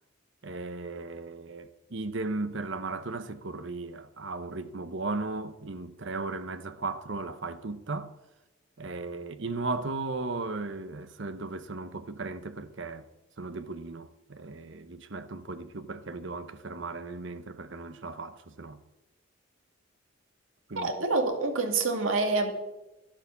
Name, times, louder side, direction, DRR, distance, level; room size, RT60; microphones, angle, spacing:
voice 1, 0.4-8.1 8.8-13.1 13.4-18.8 20.7-20.9, right 3 dB, 60° right, 1.0 m, -36 dB
voice 2, 20.8-22.5, right 3 dB, 75° right, 2.3 m, -27 dB
12.0 x 11.5 x 7.0 m
head